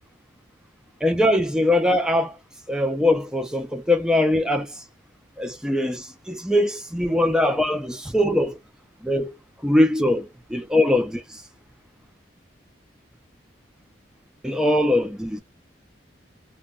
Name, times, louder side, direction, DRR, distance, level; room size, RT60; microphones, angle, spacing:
voice 1, 1.0-2.3 2.7-4.7 5.4-8.5 9.0-9.3 9.6-11.2 14.4-15.4, left 1 dB, 5° right, 0.4 m, -21 dB
2.2 x 2.2 x 3.6 m
head